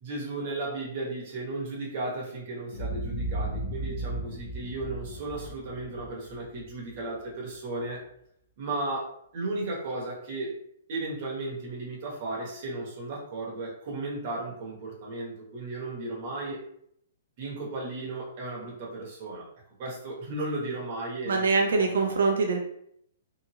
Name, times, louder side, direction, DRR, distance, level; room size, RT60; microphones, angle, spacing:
voice 1, 0.0-8.0 8.6-10.5 10.9-16.6 17.4-19.5 19.8-21.5 21.8-22.2, right 2 dB, 30° right, -4 dB, 0.9 m, -35 dB
Boom, 2.7-7.0, right 1 dB, 55° left, 0.5 m, -35 dB
voice 2, 21.3-22.6, right 4 dB, 80° right, 2 dB, 0.4 m, -24 dB
2.8 x 2.4 x 2.8 m, 0.71 s
hypercardioid pair, 175°, 0 cm